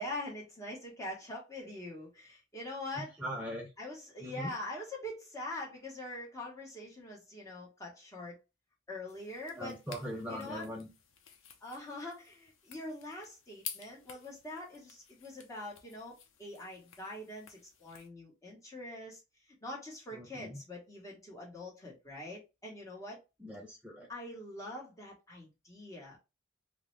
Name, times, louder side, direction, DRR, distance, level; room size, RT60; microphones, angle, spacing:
voice 1, 0.0-3.1 3.8-8.4 8.9-9.7 10.3-10.7 11.6-19.2 19.6-23.2 24.1-26.2, left 1 dB, 15° left, 1.1 m, -43 dB
voice 2, 3.0-3.7 4.2-4.5 9.6-10.9 20.1-20.6 23.4-24.1, equal, 5° right, 0.5 m, -41 dB
sound 1, 9.1-18.1, left 8 dB, 75° left, 0.6 m, -51 dB
3.7 x 2.1 x 3.1 m
head